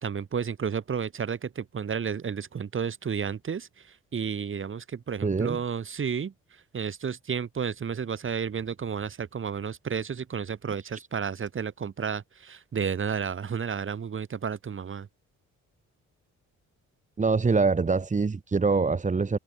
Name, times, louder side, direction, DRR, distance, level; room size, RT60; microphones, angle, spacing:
voice 1, 0.0-6.3 6.7-15.1, right 6 dB, 40° right, 2.7 m, -32 dB
voice 2, 5.2-5.6 17.2-19.4, right 4 dB, 25° right, 1.5 m, -24 dB
open air
cardioid pair, 90°, 30 cm